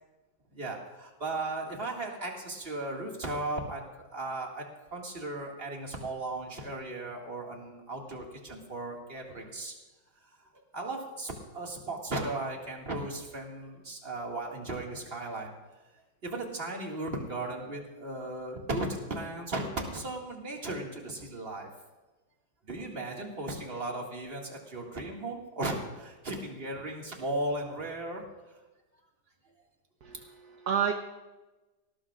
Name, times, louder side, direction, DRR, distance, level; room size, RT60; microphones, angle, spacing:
voice 1, 0.5-3.8 4.1-4.6 4.9-9.7 10.7-15.5 16.2-21.7 22.7-28.3, right 2 dB, 30° right, -1 dB, 2.2 m, -36 dB
voice 2, 30.0-30.9, right 8 dB, 60° right, 4 dB, 1.4 m, -30 dB
19.0 x 19.0 x 2.5 m, 1.2 s
omnidirectional pair, 2.0 m